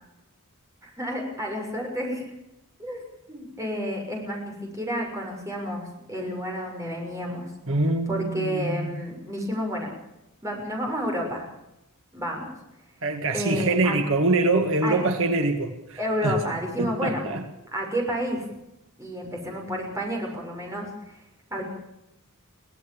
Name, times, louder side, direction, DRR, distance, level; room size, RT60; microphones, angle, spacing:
voice 1, 0.8-2.3 2.8-3.0 3.3-7.5 8.1-9.9 10.4-11.5 12.1-12.5 13.3-14.0 14.8-15.1 16.0-17.2 17.7-18.4 19.0-21.2 21.5-21.6, equal, 15° right, 0 dB, 6.5 m, -30 dB
voice 2, 7.7-8.9 13.0-16.3 16.8-17.4, right 2 dB, 65° right, 6 dB, 1.8 m, -24 dB
24.0 x 17.0 x 7.2 m, 0.88 s
head